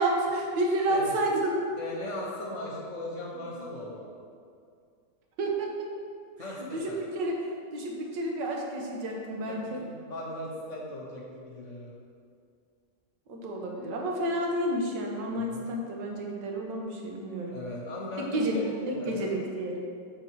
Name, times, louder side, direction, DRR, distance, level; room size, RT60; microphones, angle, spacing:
voice 1, 0.0-1.6 5.4-5.9 6.6-7.4 7.7-9.8 13.3-17.5 18.3-19.8, right 1 dB, 85° right, 0 dB, 1.6 m, -30 dB
voice 2, 1.8-4.1 6.4-7.0 9.5-11.9 15.5-15.7 17.5-19.4, left 1 dB, 50° left, -3 dB, 1.2 m, -38 dB
6.2 x 4.3 x 4.5 m, 2.3 s
omnidirectional pair, 1.9 m